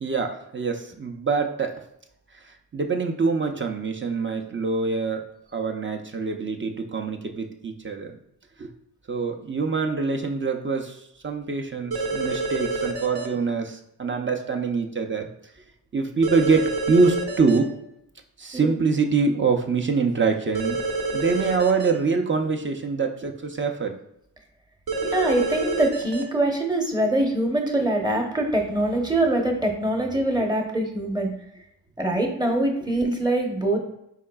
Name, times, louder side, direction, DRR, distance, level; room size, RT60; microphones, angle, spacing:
voice 1, 0.0-1.8 2.4-5.2 5.5-8.1 8.6-8.7 9.1-15.3 15.9-17.7 18.4-20.8 21.1-23.9, right 4 dB, 30° right, 4 dB, 0.5 m, -25 dB
sound 1, 11.9-13.3 16.2-17.6 20.5-21.9 24.9-26.2, right 3 dB, 65° right, 0.9 m, -27 dB
voice 2, 25.0-31.3 32.0-33.8, right 1 dB, 10° right, 2 dB, 0.8 m, -23 dB
4.7 x 3.6 x 2.2 m, 0.81 s
cardioid pair, 70°, 40 cm